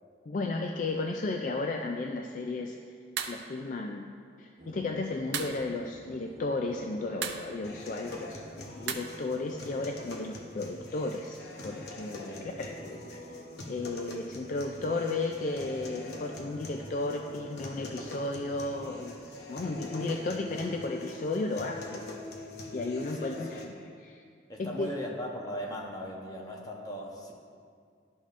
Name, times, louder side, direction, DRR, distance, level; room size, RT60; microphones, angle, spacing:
voice 1, 0.3-2.8 3.3-4.1 4.4-8.4 8.7-11.4 11.6-12.8 13.1-13.2 13.7-19.2 19.5-22.1 22.7-24.2 24.6-24.9, left 3 dB, 45° left, 3 dB, 0.3 m, -34 dB
sound 1, 3.2-3.4 5.3-5.6 7.2-7.5 8.9-9.0, right 8 dB, 80° right, 0.5 m, -33 dB
sound 2, 4.6-19.5, right 1 dB, 55° right, 1.2 m, -52 dB
sound 3, 7.6-23.6, left 1 dB, 65° left, 0.9 m, -43 dB
voice 2, 23.1-23.6 24.5-27.3, equal, 20° left, -1 dB, 0.9 m, -39 dB
12.5 x 5.3 x 2.5 m, 2.2 s
head